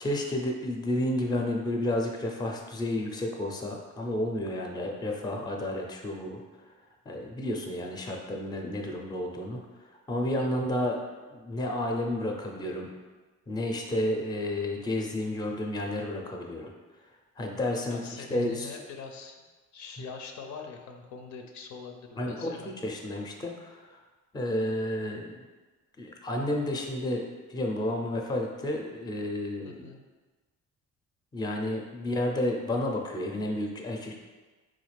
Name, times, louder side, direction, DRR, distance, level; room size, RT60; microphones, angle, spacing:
voice 1, 0.0-6.4 7.1-9.6 10.1-12.9 13.5-16.7 17.4-18.7 22.2-23.8 24.3-25.4 26.0-29.9 31.3-34.2, left 1 dB, 15° left, 1 dB, 0.4 m, -31 dB
voice 2, 10.4-10.8 17.9-19.3 19.7-22.7 29.6-30.0, left 5 dB, 70° left, 4 dB, 0.5 m, -43 dB
3.6 x 2.4 x 3.2 m, 1.3 s
cardioid pair, 90°, 30 cm